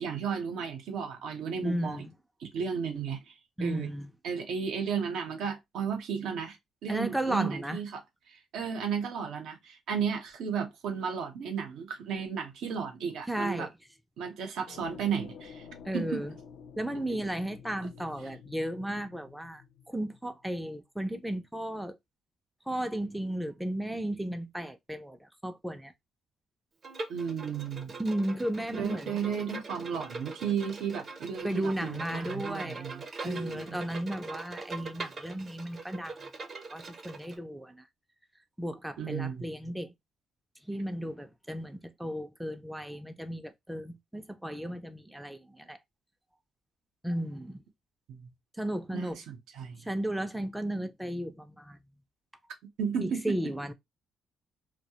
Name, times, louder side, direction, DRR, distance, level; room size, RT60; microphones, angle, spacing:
voice 1, 0.0-2.0 2.4-3.3 3.6-3.9 4.2-6.6 6.8-8.0 8.3-13.7 14.2-15.6 15.9-16.2 27.1-28.0 28.8-33.8 39.0-39.7 48.1-48.3 48.9-49.8 52.8-53.4, right 7 dB, 80° right, 0.6 m, -34 dB
voice 2, 1.6-2.1 3.6-4.1 6.9-7.8 13.3-13.7 15.8-16.3 16.8-22.0 22.7-25.9 28.0-29.2 31.4-32.9 33.2-36.3 36.7-37.9 38.6-39.9 40.7-45.8 47.0-47.6 48.6-49.2 49.8-51.8 53.0-53.7, right 1 dB, 5° right, 0.4 m, -34 dB
sound 1, 14.7-20.5, left 7 dB, 75° left, 0.4 m, -50 dB
Bowed string instrument, 26.8-37.4, right 3 dB, 45° right, 0.6 m, -42 dB
2.3 x 2.1 x 2.8 m
cardioid pair, 90°, 0 cm